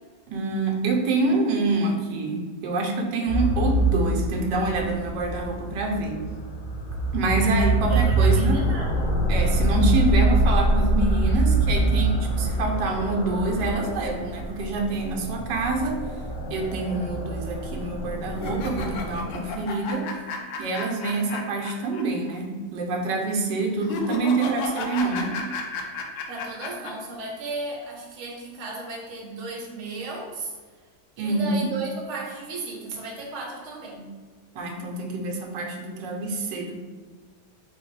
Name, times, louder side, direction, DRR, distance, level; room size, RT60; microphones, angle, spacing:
voice 1, 0.3-6.2 7.1-8.6 9.3-16.0 16.5-20.1 20.6-25.4 31.2-31.7 34.5-36.8, right 3 dB, 85° right, 1 dB, 1.3 m, -26 dB
sound 1, 3.3-19.5, right 1 dB, 60° left, 0.5 m, -25 dB
voice 2, 7.9-9.1 26.3-30.5 31.2-34.1, right 3 dB, 50° right, -1 dB, 1.1 m, -35 dB
sound 2, 18.3-22.0 22.3-22.4 23.8-26.9, left 3 dB, 85° left, 1.3 m, -33 dB
3.5 x 3.2 x 4.6 m, 1.5 s
omnidirectional pair, 1.9 m